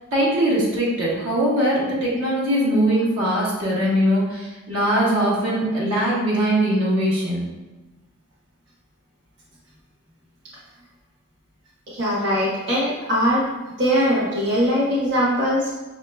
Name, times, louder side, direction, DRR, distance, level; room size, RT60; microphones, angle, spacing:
voice 1, 0.1-7.4, right 1 dB, 85° right, -6 dB, 1.3 m, -21 dB
voice 2, 11.9-13.5 13.8-15.7, equal, 60° right, -7 dB, 1.0 m, -21 dB
6.0 x 2.9 x 2.2 m, 1.2 s
head